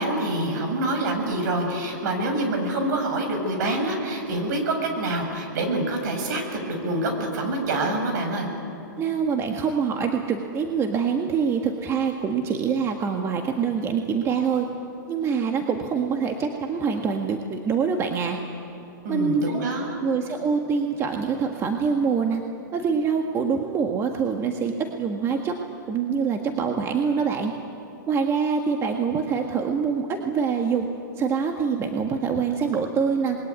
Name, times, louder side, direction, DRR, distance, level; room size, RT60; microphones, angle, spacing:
voice 1, 0.0-8.5 19.0-20.0, right 1 dB, 60° right, 4 dB, 7.2 m, -26 dB
voice 2, 9.0-14.6 15.1-18.4 19.1-19.6 20.0-22.4 22.7-25.5 25.9-27.5 28.1-30.9 31.2-33.4, right 6 dB, 25° right, 3 dB, 1.7 m, -25 dB
27.5 x 21.5 x 9.6 m, 3.0 s
hypercardioid pair, 130°, 11 cm